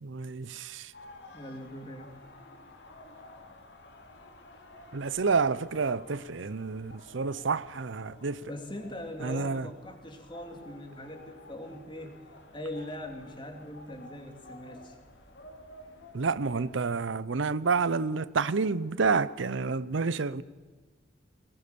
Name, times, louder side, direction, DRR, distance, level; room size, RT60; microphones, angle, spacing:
voice 1, 0.0-0.9 4.9-8.5 9.2-9.7 16.1-20.4, right 4 dB, 85° right, 0.6 m, -29 dB
sound 1, 0.9-16.8, left 1 dB, 65° left, 2.9 m, -52 dB
voice 2, 1.3-2.1 8.4-12.2 12.5-15.0, left 1 dB, 25° left, 2.7 m, -41 dB
20.5 x 19.5 x 6.9 m
head